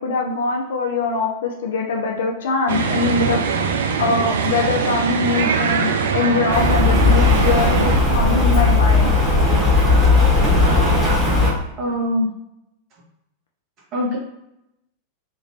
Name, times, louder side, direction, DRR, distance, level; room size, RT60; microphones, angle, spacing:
voice 1, 0.0-3.4 4.0-9.1, left 3 dB, 60° left, 1 dB, 0.5 m, -22 dB
sound 1, 2.7-8.0, right 5 dB, 60° right, 0.3 m, -22 dB
Rain, 6.5-11.5, left 3 dB, 5° right, 1.3 m, -16 dB
voice 2, 11.8-12.3 13.9-14.2, left 1 dB, 40° right, -3 dB, 1.2 m, -22 dB
2.9 x 2.5 x 3.1 m, 0.84 s
figure-of-eight pair, 90°, 0 cm